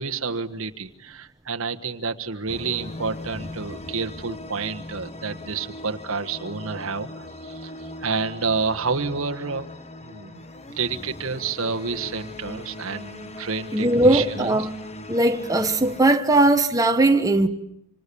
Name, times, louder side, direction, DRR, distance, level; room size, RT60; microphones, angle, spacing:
voice 1, 0.0-9.7 10.0-10.4 10.7-14.6, right 4 dB, 80° right, 1.4 m, -29 dB
sound 1, 2.5-16.0, left 2 dB, 30° left, 1.3 m, -39 dB
voice 2, 13.7-14.7 15.1-17.5, right 2 dB, 15° right, 1.3 m, -19 dB
26.5 x 26.0 x 8.6 m
head